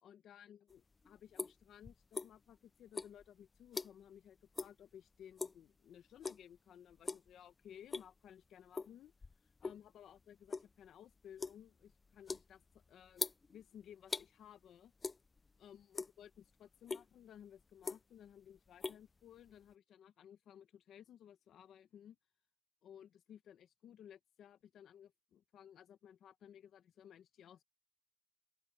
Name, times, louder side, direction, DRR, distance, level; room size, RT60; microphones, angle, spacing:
voice 1, 0.0-9.1 9.6-14.9 15.6-22.2 22.8-27.6, left 9 dB, 70° left, 1.2 m, -58 dB
sound 1, 0.7-2.6 2.9-4.2 4.5-4.8 5.1-5.7 6.2-6.6 6.9-7.3 7.7-8.3 8.7-9.9 10.2-14.3 15.0-15.6 15.8-16.4 16.9-17.0 17.6-18.3 18.6-19.7, left 4 dB, 30° left, 0.7 m, -43 dB
open air
cardioid pair, 90°, 0 cm